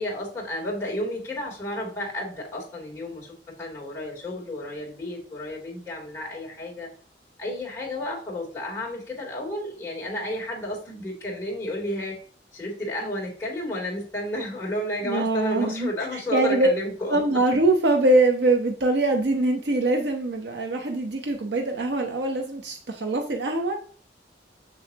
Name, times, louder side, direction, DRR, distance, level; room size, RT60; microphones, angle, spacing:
voice 1, 0.0-6.9 7.4-12.2 12.5-17.2, left 1 dB, 15° left, -5 dB, 3.3 m, -32 dB
voice 2, 15.0-16.7 17.1-23.8, right 2 dB, 80° right, 3 dB, 0.9 m, -23 dB
6.9 x 6.9 x 2.9 m, 0.43 s
head